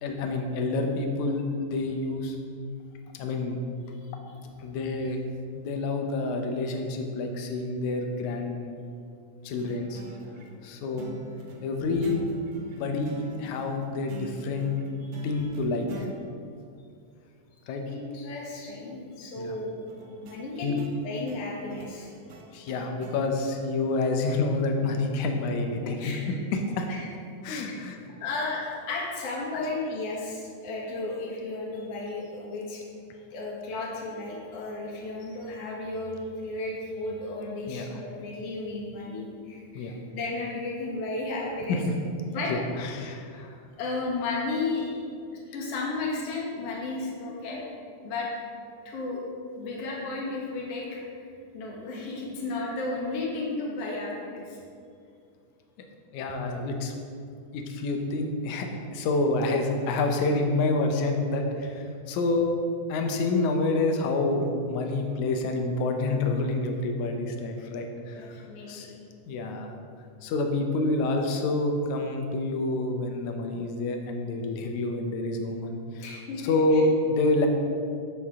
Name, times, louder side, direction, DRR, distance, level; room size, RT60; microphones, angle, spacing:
voice 1, 0.0-2.4 3.2-3.6 4.6-5.2 5.5-8.7 9.4-10.0 10.6-11.1 11.6-12.2 12.7-14.8 15.2-16.1 17.7-17.8 19.4-19.6 20.6-20.8 22.5-26.9 27.4-28.0 29.5-29.7 37.7-37.9 39.8-39.9 41.7-41.8 42.5-43.5 56.1-56.9 57.5-62.5 62.9-68.9 69.3-69.7 70.2-76.1 76.4-77.5, left 2 dB, 70° left, 3 dB, 2.2 m, -28 dB
sound 1, 9.6-16.1 19.9-23.2, right 1 dB, 70° right, 1.4 m, -46 dB
voice 2, 17.9-19.8 20.2-22.1 25.8-26.2 26.9-27.0 28.2-32.8 33.3-41.8 42.3-42.5 43.8-45.1 45.5-47.6 48.0-48.3 48.9-49.2 49.6-50.9 51.5-54.6 68.1-68.9 76.0-76.8, left 3 dB, 55° left, -3 dB, 2.5 m, -34 dB
11.0 x 7.7 x 3.7 m, 2.4 s
omnidirectional pair, 3.7 m